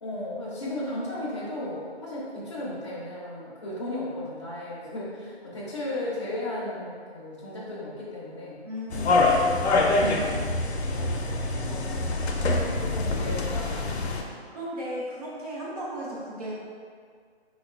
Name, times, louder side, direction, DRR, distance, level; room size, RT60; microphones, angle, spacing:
voice 1, 0.0-8.7 9.9-12.4 12.8-14.0, left 1 dB, 30° left, -7 dB, 0.5 m, -35 dB
voice 2, 8.6-9.6 14.5-16.5, equal, 35° right, -7 dB, 0.7 m, -35 dB
sound 1, 8.9-14.2, left 2 dB, 80° left, 0.5 m, -25 dB
3.7 x 2.2 x 2.3 m, 2.1 s
hypercardioid pair, 160°, 32 cm